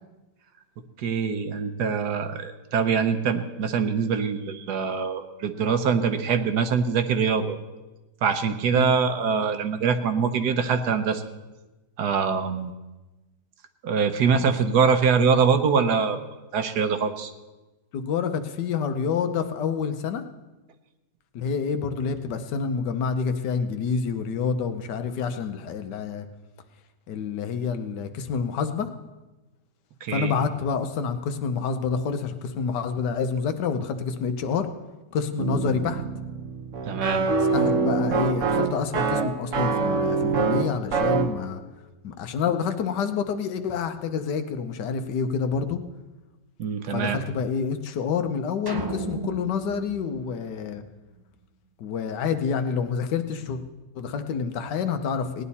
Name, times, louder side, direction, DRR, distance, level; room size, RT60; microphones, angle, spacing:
voice 1, 1.0-7.6 8.2-11.2 12.0-12.7 13.8-16.2 16.5-17.3 30.0-30.3 36.9-37.3 46.6-47.2, right 6 dB, 70° right, 8 dB, 1.4 m, -23 dB
voice 2, 17.9-20.2 21.3-26.3 27.1-28.9 30.1-34.7 35.1-36.0 37.5-41.6 42.0-45.8 46.9-50.8 51.8-53.6 53.9-55.4, left 6 dB, 80° left, 8 dB, 1.5 m, -28 dB
sound 1, 35.4-41.4, right 4 dB, 55° right, 1.1 m, -25 dB
sound 2, 48.7-51.1, right 4 dB, 30° right, 0.4 m, -35 dB
18.0 x 10.5 x 4.2 m, 1.1 s
omnidirectional pair, 1.8 m